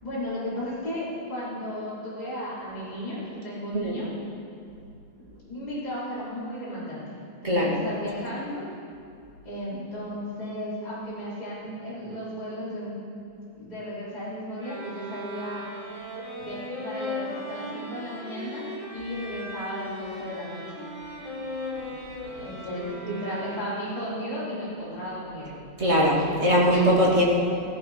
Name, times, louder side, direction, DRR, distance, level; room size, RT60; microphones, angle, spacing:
voice 1, 0.0-4.1 5.3-7.0 7.4-8.7 9.4-12.9 13.5-15.6 16.4-20.8 22.3-25.5, equal, 10° left, -10 dB, 5.0 m, -34 dB
voice 2, 7.4-7.8 25.8-27.2, equal, 20° right, -4 dB, 2.7 m, -21 dB
sound 1, 14.6-24.1, left 1 dB, 75° right, 4.8 m, -38 dB
17.0 x 15.5 x 4.6 m, 2.5 s
omnidirectional pair, 3.5 m